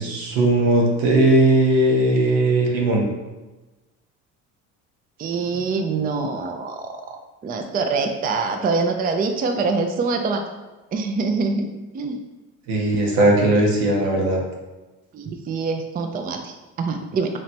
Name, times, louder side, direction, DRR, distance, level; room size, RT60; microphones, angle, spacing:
voice 1, 0.0-3.0 5.5-5.6 12.7-14.4, right 1 dB, 80° right, 0 dB, 1.1 m, -18 dB
voice 2, 5.2-10.5 10.9-11.7 11.9-12.2 15.1-17.3, right 4 dB, 25° right, 4 dB, 0.4 m, -25 dB
3.2 x 3.0 x 4.2 m, 1.1 s
supercardioid pair, 85°, 34 cm